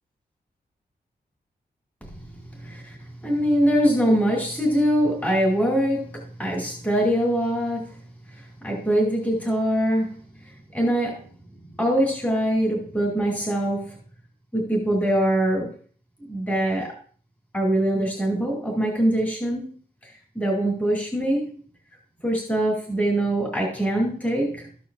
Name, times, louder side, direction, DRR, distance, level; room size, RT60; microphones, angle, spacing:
voice 1, 3.2-8.0 8.4-10.2 10.4-11.3 11.8-14.0 14.5-15.7 16.2-16.9 17.5-19.6 20.0-21.5 22.2-24.7, right 1 dB, 10° left, -1 dB, 2.4 m, -23 dB
13.5 x 8.4 x 2.4 m, 0.42 s
wide cardioid pair, 160°, 17 cm